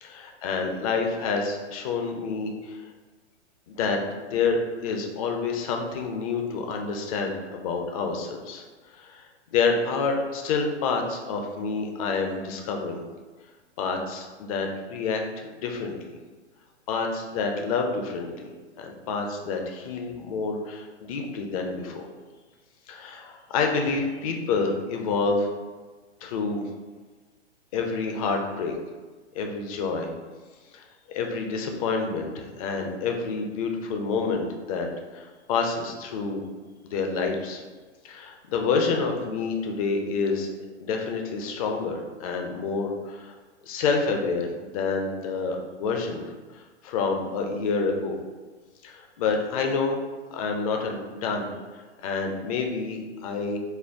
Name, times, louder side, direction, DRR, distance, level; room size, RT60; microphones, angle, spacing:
voice 1, 0.0-2.8 3.7-8.6 9.0-9.2 9.5-13.0 13.8-16.0 16.9-18.5 18.8-22.0 22.9-25.5 26.2-26.6 27.7-28.7 29.3-30.1 30.7-34.9 35.1-36.4 36.8-37.6 38.0-40.5 40.8-43.3 43.7-46.2 46.8-48.2 48.8-50.0 50.3-51.5 52.0-53.6, left 4 dB, 30° left, 3 dB, 0.5 m, -28 dB
4.3 x 2.2 x 3.4 m, 1.3 s
figure-of-eight pair, 115°, 35 cm